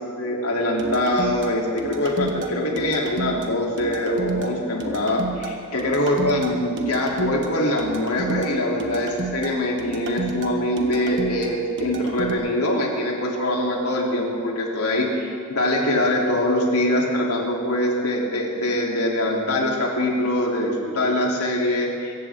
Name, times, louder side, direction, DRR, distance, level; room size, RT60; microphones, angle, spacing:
voice 1, 0.2-22.1, left 1 dB, 85° left, -2 dB, 3.1 m, -23 dB
sound 1, 0.8-12.3, right 4 dB, 55° right, 1.5 m, -31 dB
24.5 x 15.0 x 3.7 m, 2.3 s
head